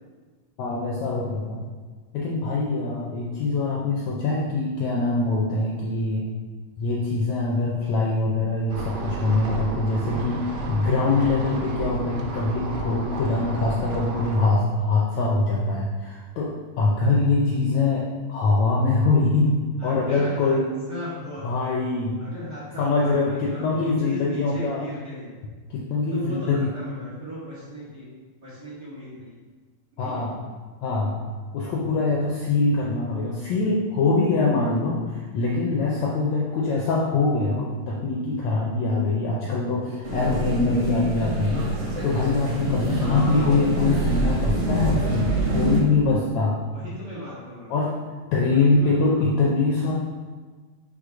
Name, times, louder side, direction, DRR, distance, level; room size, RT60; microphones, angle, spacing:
voice 1, 0.6-1.6 2.1-6.3 6.8-19.5 19.8-20.7 21.4-22.2 22.8-24.8 25.7-26.7 30.0-30.4 30.8-31.2 31.5-41.7 42.0-46.6 47.7-47.9 48.3-49.9, left 3 dB, 75° left, -3 dB, 1.7 m, -23 dB
sound 1, 8.7-14.5, right 3 dB, 80° right, 2.5 m, -32 dB
voice 2, 19.8-20.6 20.9-21.5 22.2-25.3 26.1-28.1 28.4-29.4 30.0-30.3 43.0-43.5 46.7-47.7 48.5-49.4, equal, 35° right, -10 dB, 2.1 m, -36 dB
sound 2, 40.0-45.8, right 1 dB, 65° right, 1.1 m, -25 dB
5.3 x 4.3 x 4.9 m, 1.4 s
omnidirectional pair, 3.8 m